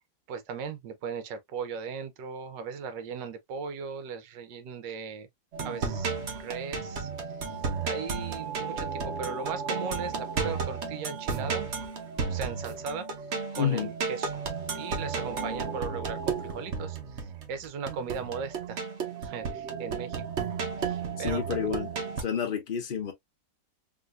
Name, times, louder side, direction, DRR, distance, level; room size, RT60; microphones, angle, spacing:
voice 1, 0.3-5.3 5.6-6.1 6.4-7.1 7.8-11.7 12.3-13.1 13.5-14.5 14.7-18.8 19.2-20.5 20.8-21.4, right 6 dB, 75° right, 1.3 m, -38 dB
sound 1, 5.5-22.2, right 5 dB, 50° right, 0.9 m, -33 dB
voice 2, 13.6-13.9 21.2-21.9 22.2-23.1, left 8 dB, 75° left, 0.4 m, -29 dB
3.7 x 2.6 x 2.4 m
omnidirectional pair, 2.1 m